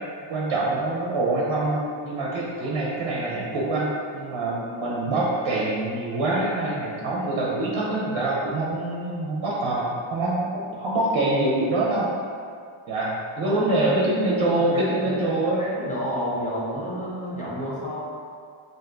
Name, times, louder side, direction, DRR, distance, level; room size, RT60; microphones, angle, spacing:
voice 1, 0.3-12.3 12.9-15.6, right 2 dB, 75° right, -5 dB, 0.6 m, -25 dB
voice 2, 14.1-18.0, equal, 15° left, -8 dB, 0.7 m, -30 dB
3.4 x 2.5 x 2.5 m, 2.2 s
wide cardioid pair, 150°, 47 cm